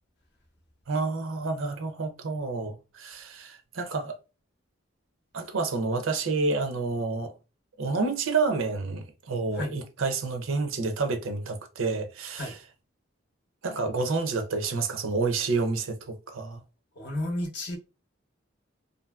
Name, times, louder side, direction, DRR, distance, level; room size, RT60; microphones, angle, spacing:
voice 1, 0.9-4.2 5.3-7.3 7.8-12.6 13.6-16.6, right 3 dB, 75° right, 0.5 m, -29 dB
voice 2, 17.0-17.8, left 1 dB, 55° left, 0.6 m, -32 dB
2.7 x 2.6 x 2.2 m
head